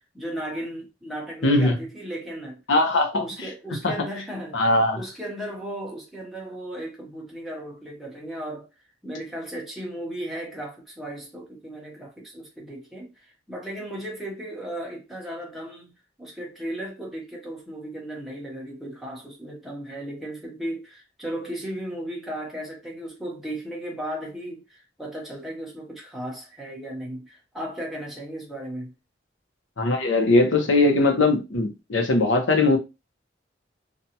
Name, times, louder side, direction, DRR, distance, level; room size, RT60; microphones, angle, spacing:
voice 1, 0.1-2.6 3.1-4.6 4.9-8.7 9.0-15.9 16.2-28.9, right 1 dB, ahead, 0.7 m, -35 dB
voice 2, 1.4-1.8 2.7-3.5 3.8-3.9 4.5-5.0 29.8-32.8, left 2 dB, 80° left, 0.8 m, -20 dB
2.6 x 2.2 x 2.7 m
head